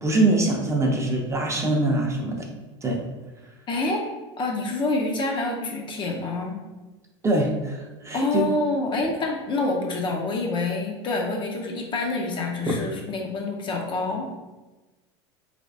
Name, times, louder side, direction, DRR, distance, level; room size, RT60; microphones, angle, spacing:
voice 1, 0.0-2.5 2.8-3.0 7.2-8.4, right 2 dB, 20° right, 0 dB, 0.7 m, -23 dB
voice 2, 3.7-4.1 4.4-6.6 8.1-14.3, left 2 dB, 30° left, 1 dB, 0.7 m, -27 dB
3.3 x 3.1 x 2.6 m, 1.2 s
hypercardioid pair, 85°, 15 cm